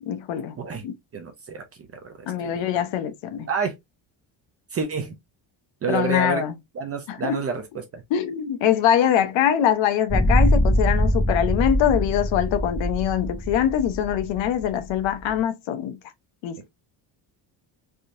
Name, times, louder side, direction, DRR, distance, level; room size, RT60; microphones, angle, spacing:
voice 1, 0.0-0.6 0.8-0.9 2.3-3.5 5.9-6.5 7.1-7.4 8.1-16.0 16.4-16.6, left 10 dB, 70° left, 0.8 m, -23 dB
voice 2, 1.1-1.6 2.0-2.6 3.5-3.8 4.7-5.2 5.8-6.4 6.8-8.0, right 4 dB, 30° right, 0.6 m, -28 dB
sound 1, 10.1-15.3, equal, 20° left, 1.0 m, -23 dB
3.5 x 2.7 x 2.5 m
cardioid pair, 140°, 46 cm